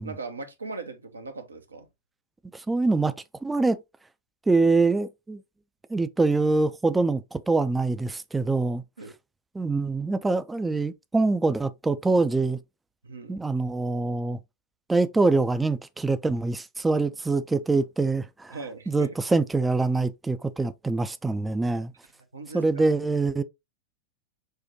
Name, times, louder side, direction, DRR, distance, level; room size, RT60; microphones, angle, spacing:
voice 1, 0.0-1.9 9.0-9.1 13.0-13.4 18.5-19.1 22.3-22.9, right 3 dB, 75° right, 0.7 m, -39 dB
voice 2, 2.5-3.1 3.4-3.8 4.5-5.4 5.9-8.8 9.5-12.6 13.3-14.4 14.9-18.6 18.9-21.9 22.5-23.4, right 3 dB, 10° right, 0.4 m, -24 dB
6.5 x 2.2 x 2.8 m
figure-of-eight pair, 90°, 0 cm